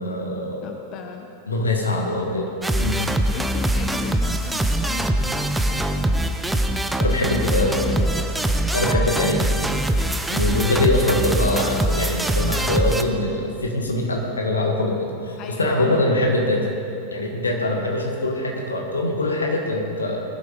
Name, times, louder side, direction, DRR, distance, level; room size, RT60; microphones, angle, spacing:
voice 1, 0.0-0.6 1.5-2.5 2.8-3.0 7.0-7.8 8.7-9.4 10.3-16.7 17.1-20.2, left 1 dB, 75° left, 0 dB, 2.2 m, -23 dB
voice 2, 0.6-1.3 2.7-6.2 6.5-6.8 7.3-9.1 15.4-16.1, left 6 dB, 40° left, 4 dB, 0.9 m, -36 dB
sound 1, 2.6-13.0, right 1 dB, 5° right, 0.8 m, -23 dB
20.0 x 12.0 x 3.8 m, 2.8 s
figure-of-eight pair, 90°, 0 cm